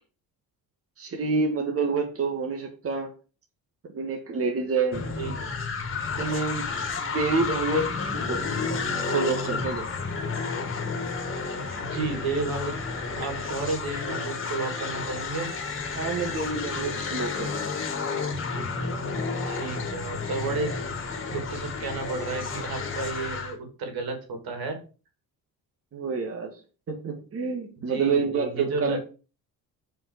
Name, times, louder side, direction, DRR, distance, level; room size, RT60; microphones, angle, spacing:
voice 1, 1.0-3.1 3.9-5.1 6.2-6.7 7.0-8.5 8.9-9.9 15.9-17.7 25.9-26.5 26.9-29.0, right 4 dB, 40° right, 3 dB, 1.9 m, -28 dB
sound 1, 4.9-23.6, left 4 dB, 35° left, 1.9 m, -31 dB
voice 2, 11.8-12.7 13.2-15.5 19.4-20.7 21.3-24.8 27.8-29.0, right 3 dB, 85° right, 4 dB, 3.1 m, -32 dB
7.4 x 5.2 x 6.6 m, 0.35 s
cardioid pair, 145°, 35 cm